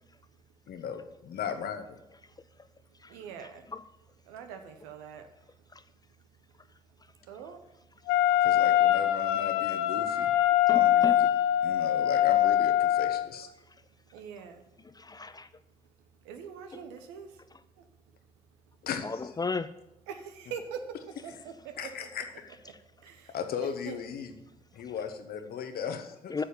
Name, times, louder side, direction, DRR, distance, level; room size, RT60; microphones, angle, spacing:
voice 1, 0.7-2.0 8.4-10.3 10.7-11.3 11.6-13.5 18.8-19.3 21.8-22.5 23.3-24.3 24.7-26.3, left 7 dB, 55° left, 7 dB, 1.3 m, -37 dB
voice 2, 3.1-3.7 4.2-5.3 7.3-7.6 14.1-14.6 16.2-17.4 17.8-17.9 20.1-20.9 21.2-22.2 23.0-23.3 23.6-24.1, right 7 dB, 75° right, 7 dB, 1.1 m, -43 dB
Wind instrument woodwind instrument, 8.1-13.3, left 12 dB, 75° left, 0.6 m, -24 dB
voice 3, 10.7-11.2 15.0-15.5 16.7-16.8 19.0-19.7 26.3-26.4, left 4 dB, 20° left, 13 dB, 0.5 m, -34 dB
8.6 x 6.9 x 7.1 m, 0.88 s
hypercardioid pair, 45°, 18 cm